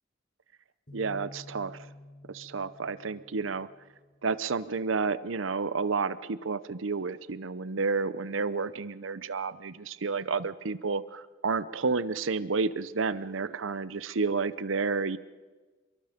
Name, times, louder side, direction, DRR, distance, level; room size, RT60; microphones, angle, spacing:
sound 1, 0.9-4.6, left 1 dB, 40° left, 6.5 m, -50 dB
voice 1, 0.9-1.8 2.3-3.7 4.2-15.2, right 4 dB, 85° right, 15 dB, 0.8 m, -30 dB
25.5 x 23.0 x 5.2 m, 1.3 s
head